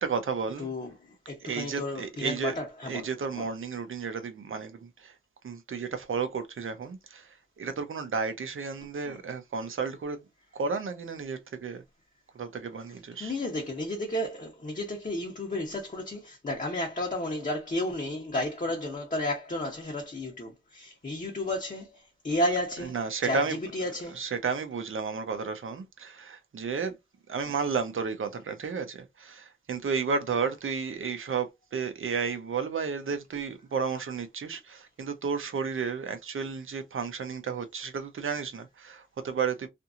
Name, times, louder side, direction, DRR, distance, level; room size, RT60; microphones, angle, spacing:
voice 1, 0.0-0.7 1.4-2.5 2.9-5.1 5.4-10.2 10.5-11.8 12.3-13.3 22.8-23.6 24.1-27.0 27.3-39.7, right 5 dB, 85° right, 0.6 m, -32 dB
voice 2, 0.6-3.1 3.4-3.5 9.0-9.2 13.2-23.0 23.2-24.2 27.5-27.6, left 1 dB, 40° left, 0.8 m, -32 dB
2.8 x 2.5 x 2.4 m
wide cardioid pair, 100°, 20 cm